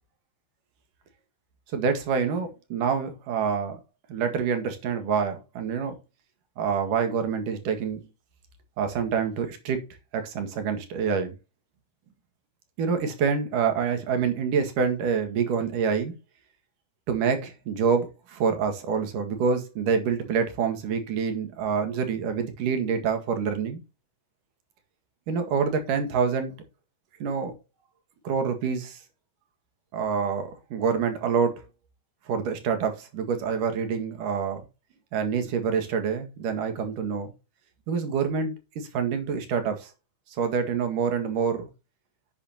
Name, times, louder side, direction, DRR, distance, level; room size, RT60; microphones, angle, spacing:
voice 1, 1.7-3.8 4.1-6.0 6.6-8.0 8.8-9.8 10.1-11.4 12.8-16.1 17.1-23.8 25.3-26.5 27.2-27.5 28.3-29.0 29.9-31.6 32.3-34.7 35.1-37.3 37.9-39.9 40.4-41.7, right 6 dB, 85° right, 3.4 m, -26 dB
10.5 x 8.3 x 2.8 m
omnidirectional pair, 3.7 m